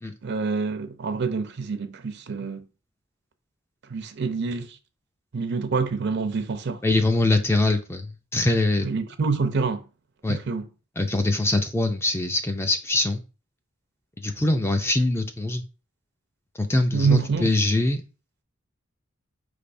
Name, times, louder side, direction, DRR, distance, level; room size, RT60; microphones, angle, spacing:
voice 1, 0.2-2.6 3.9-4.8 5.3-6.8 8.8-9.8 10.3-10.7 16.9-17.5, right 4 dB, 55° right, 0.5 m, -26 dB
voice 2, 6.8-8.9 10.2-10.4 11.0-13.2 14.2-15.6 16.6-18.0, left 2 dB, 10° left, 0.4 m, -23 dB
4.9 x 3.3 x 2.6 m
head